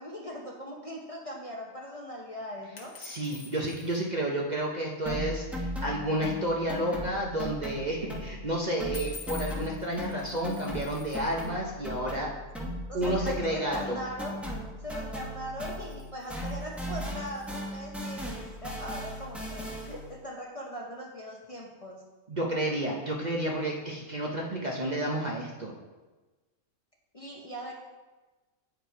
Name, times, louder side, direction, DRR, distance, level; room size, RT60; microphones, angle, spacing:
voice 1, 0.0-2.9 12.9-14.4 14.8-22.0 27.1-27.7, equal, 30° left, -2 dB, 0.7 m, -40 dB
sound 1, 2.8-4.0 8.9-11.5 15.4-17.7, left 4 dB, 65° left, 1.5 m, -48 dB
voice 2, 3.0-12.3 12.9-14.0 22.3-25.7, right 1 dB, 40° right, -1 dB, 0.7 m, -31 dB
sound 2, 5.1-8.5 8.8-16.0 16.3-20.1, equal, ahead, 0.9 m, -37 dB
8.4 x 5.1 x 4.5 m, 1.2 s
omnidirectional pair, 1.4 m